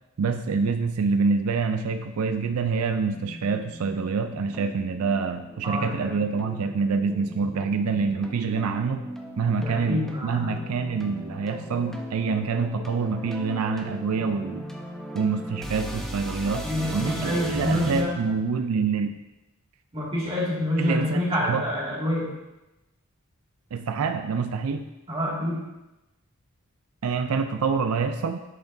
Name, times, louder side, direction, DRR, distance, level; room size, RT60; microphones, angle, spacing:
voice 1, 0.2-9.1 9.4-14.7 15.1-19.2 20.8-21.7 23.7-24.9 27.0-28.4, right 5 dB, 85° right, 8 dB, 0.4 m, -26 dB
sound 1, 3.1-18.0, equal, ahead, 0.7 m, -38 dB
voice 2, 5.6-6.2 9.6-10.5 16.6-18.1 19.9-22.3 25.1-25.6, left 1 dB, 30° right, -7 dB, 2.1 m, -27 dB
11.0 x 5.9 x 2.6 m, 0.99 s
head